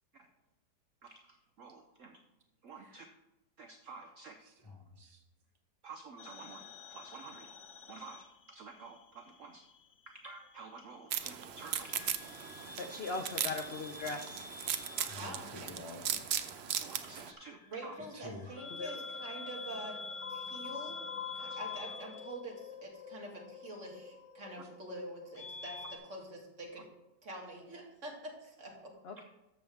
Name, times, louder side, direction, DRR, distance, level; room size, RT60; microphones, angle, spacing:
voice 1, 1.1-2.2 2.6-3.1 3.6-4.4 5.8-7.5 7.9-9.6 10.1-12.1 15.0-15.1 16.8-17.9 21.5-21.6, right 4 dB, 60° right, 6 dB, 0.9 m, -51 dB
voice 2, 2.7-3.1 4.4-5.2 15.1-16.2 18.1-18.6, left 2 dB, 20° left, 1 dB, 0.8 m, -49 dB
sound 1, 6.2-9.0 9.3-10.5 11.7-26.0, left 5 dB, 50° left, 1.2 m, -47 dB
sound 2, 11.1-17.3, right 9 dB, 85° right, 0.5 m, -38 dB
voice 3, 12.8-14.5 18.8-18.9 29.0-29.2, left 3 dB, 75° left, 6 dB, 0.5 m, -39 dB
voice 4, 15.1-15.7 17.7-20.0 20.3-21.0 21.3-26.8 27.2-28.9, right 1 dB, 45° right, 0 dB, 2.2 m, -46 dB
13.5 x 6.8 x 3.5 m, 0.93 s
omnidirectional pair, 1.9 m